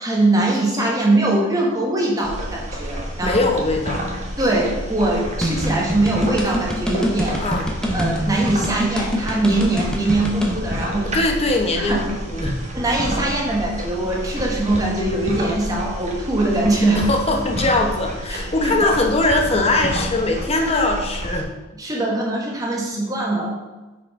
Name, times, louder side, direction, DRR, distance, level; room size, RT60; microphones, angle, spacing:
voice 1, 0.0-3.4 4.4-7.4 7.9-11.2 11.8-12.0 12.7-17.1 18.3-18.5 18.8-18.9 21.7-23.5, right 2 dB, 20° right, -2 dB, 1.3 m, -22 dB
sound 1, 2.2-21.4, equal, 35° right, 1.1 m, -29 dB
voice 2, 3.2-4.0 7.4-7.7 11.0-12.6 17.0-21.5, left 2 dB, 30° left, 2 dB, 0.9 m, -21 dB
sound 2, 5.4-10.6, equal, 5° left, 0.9 m, -24 dB
5.8 x 4.6 x 4.7 m, 1.1 s
head